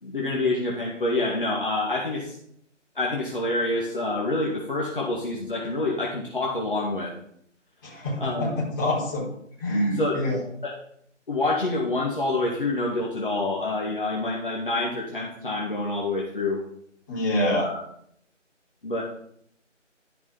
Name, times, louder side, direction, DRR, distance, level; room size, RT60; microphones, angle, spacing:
voice 1, 0.0-2.4 3.0-7.1 8.2-8.5 9.9-10.2 10.6-10.7 11.3-16.6 17.5-17.8 18.8-19.0, left 2 dB, 45° left, -3 dB, 2.2 m, -27 dB
voice 2, 7.8-9.2 9.6-10.4 17.1-17.7, left 1 dB, 15° left, -8 dB, 3.9 m, -26 dB
13.0 x 6.0 x 5.5 m, 0.68 s
figure-of-eight pair, 160°, 37 cm